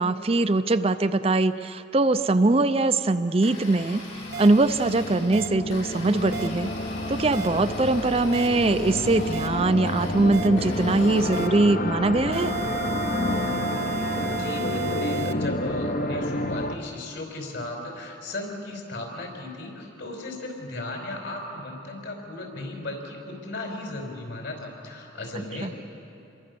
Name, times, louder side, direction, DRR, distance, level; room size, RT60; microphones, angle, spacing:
voice 1, 0.0-4.0 4.4-6.7 7.1-12.6 25.6-25.7, right 2 dB, 30° right, 10 dB, 0.5 m, -22 dB
Domestic sounds home sounds, 3.3-11.3, left 2 dB, 80° left, 7.1 m, -42 dB
sound 1, 4.0-16.8, left 1 dB, 40° left, 0.9 m, -29 dB
sound 2, 4.3-4.5 5.3-5.5 6.3-6.5 7.3-7.5 8.3-8.5 9.3-9.5 10.3-10.5 11.3-11.5 12.3-15.3, right 9 dB, 60° right, 0.9 m, -33 dB
voice 2, 14.0-25.7, left 2 dB, 65° left, 2 dB, 5.2 m, -36 dB
28.0 x 23.0 x 6.9 m, 2.8 s
head